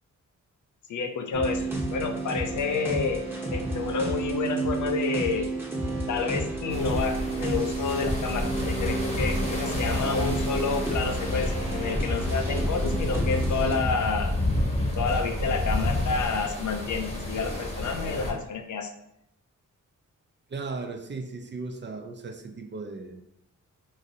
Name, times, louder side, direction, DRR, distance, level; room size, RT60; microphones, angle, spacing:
voice 1, 0.9-3.2 3.5-5.5 6.1-14.3 15.0-18.9, left 5 dB, 65° left, 6 dB, 0.5 m, -29 dB
sound 1, 1.3-13.8, right 2 dB, 5° right, 0.9 m, -31 dB
sound 2, 6.7-18.3, left 1 dB, 20° left, 0.9 m, -30 dB
voice 2, 20.5-23.3, right 3 dB, 35° right, 4 dB, 0.4 m, -36 dB
3.0 x 2.6 x 2.7 m, 0.78 s
cardioid pair, 65°, 32 cm